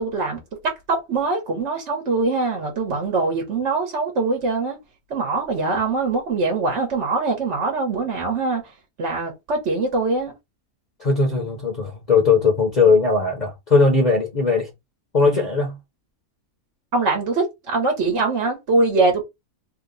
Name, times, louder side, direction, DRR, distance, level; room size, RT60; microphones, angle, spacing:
voice 1, 0.0-4.8 5.1-8.6 9.0-10.3 16.9-19.2, right 3 dB, 55° right, 1.4 m, -23 dB
voice 2, 11.0-14.7 15.1-15.8, left 4 dB, 35° left, 0.9 m, -19 dB
3.3 x 2.2 x 3.8 m
omnidirectional pair, 1.5 m